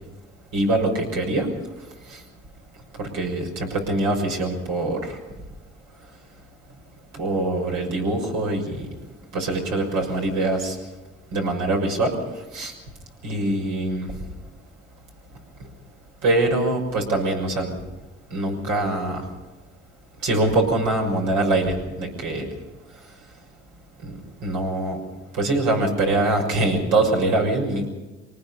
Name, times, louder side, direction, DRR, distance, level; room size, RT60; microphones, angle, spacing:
voice 1, 0.5-1.5 2.1-2.2 3.0-5.2 7.1-8.9 9.3-10.8 11.3-12.2 12.5-12.7 13.2-14.1 16.2-17.7 18.3-19.2 20.2-22.5 24.0-24.1 24.4-25.0 25.3-27.9, right 2 dB, 90° right, 2 dB, 6.3 m, -23 dB
24.0 x 19.5 x 5.7 m, 1.1 s
cardioid pair, 90°, 30 cm